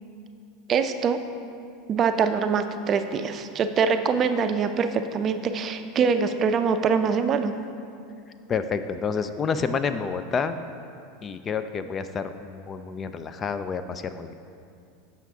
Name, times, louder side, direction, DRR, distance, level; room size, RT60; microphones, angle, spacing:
voice 1, 0.7-1.2 1.9-7.5, right 6 dB, 40° right, 8 dB, 0.4 m, -24 dB
voice 2, 8.5-10.6 11.2-14.3, left 5 dB, 30° left, 10 dB, 0.3 m, -29 dB
7.3 x 5.6 x 3.5 m, 2.5 s
hypercardioid pair, 95°, 0 cm